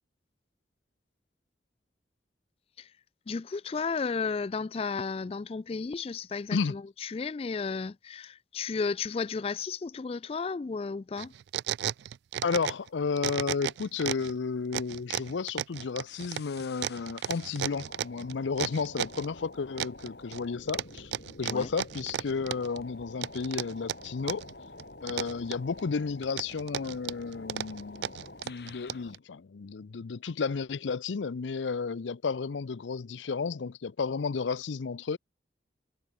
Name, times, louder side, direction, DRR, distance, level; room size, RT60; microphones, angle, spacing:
voice 1, 3.3-11.3 21.5-21.7, left 4 dB, 30° left, 0.3 m, -33 dB
sound 1, 11.2-12.9 13.2-14.3 14.7-19.3 19.8-20.4 20.7-22.8 23.2-24.5 24.8-25.8 26.2-29.2, right 10 dB, 70° right, 0.3 m, -34 dB
voice 2, 12.4-21.1 21.4-24.4 25.0-28.1 28.4-35.2, left 5 dB, 90° left, 0.5 m, -32 dB
sound 2, 16.1-29.2, left 2 dB, 65° left, 5.0 m, -49 dB
head